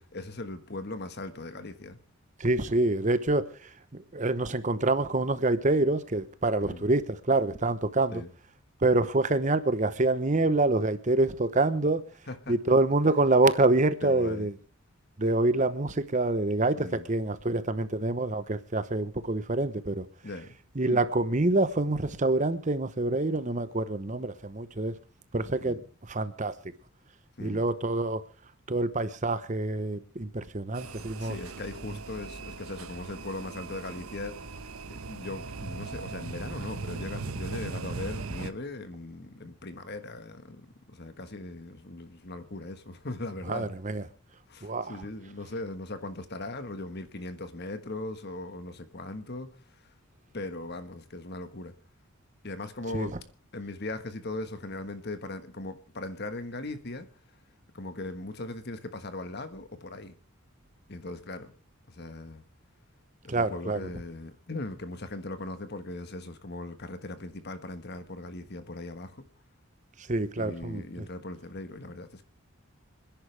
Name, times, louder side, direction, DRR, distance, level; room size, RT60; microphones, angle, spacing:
voice 1, 0.0-2.0 6.6-6.8 8.1-8.3 12.3-12.5 14.0-14.5 16.7-17.1 20.2-20.6 20.8-21.0 25.6-25.8 27.4-27.6 31.2-43.7 44.5-49.9 50.3-51.7 52.4-53.2 53.5-57.1 57.7-60.2 60.9-61.5 61.9-62.4 63.2-69.2 70.4-72.2, left 2 dB, 50° left, 1.4 m, -39 dB
voice 2, 2.4-8.2 8.8-12.0 12.5-14.5 15.2-20.1 20.8-24.9 25.3-25.8 26.1-26.5 27.4-28.2 28.7-31.4 43.5-44.0 44.6-44.9 52.9-53.1 63.3-63.8 70.1-71.1, right 2 dB, 35° right, 0.9 m, -26 dB
sound 1, 30.7-38.5, right 3 dB, 85° right, 1.0 m, -39 dB
26.5 x 10.5 x 3.4 m
head